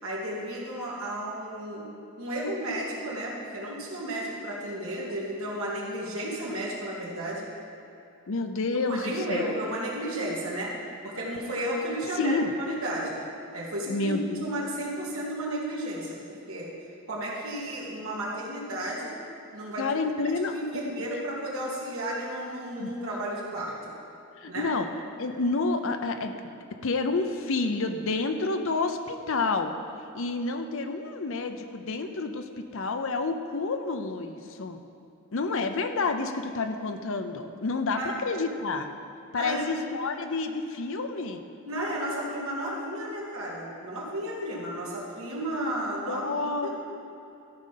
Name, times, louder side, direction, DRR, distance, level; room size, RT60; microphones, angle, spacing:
voice 1, 0.0-1.9 2.2-7.5 8.9-10.8 11.0-13.2 13.5-16.2 16.5-16.7 17.1-19.2 19.5-19.8 20.5-23.9 24.5-24.7 38.0-38.1 39.3-39.7 41.7-46.7, right 1 dB, 70° right, -4 dB, 2.2 m, -33 dB
voice 2, 8.3-9.5 12.1-12.5 13.9-14.4 19.8-21.1 22.8-22.9 24.4-24.9 25.2-26.3 26.8-29.7 30.1-34.8 35.3-38.9 39.3-41.4 45.6-45.8 46.1-46.7, left 3 dB, 65° left, 7 dB, 0.6 m, -29 dB
13.5 x 5.3 x 5.8 m, 2.8 s
head